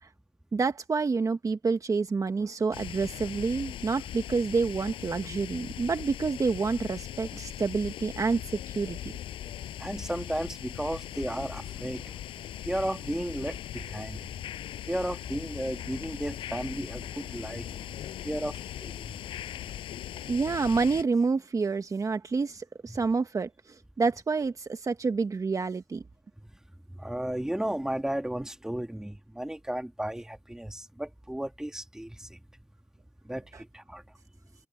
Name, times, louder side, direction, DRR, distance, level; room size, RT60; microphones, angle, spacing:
voice 1, 0.5-8.4 8.7-9.1 20.3-26.0 33.5-33.6, right 4 dB, 40° right, 1.3 m, -28 dB
sound 1, 2.7-21.0, left 12 dB, 90° left, 5.4 m, -40 dB
voice 2, 9.8-12.2 12.6-14.3 14.9-17.8 18.2-19.2 22.9-23.0 26.9-32.4 33.2-34.0, right 1 dB, 5° right, 2.2 m, -34 dB
cardioid pair, 70°, 9 cm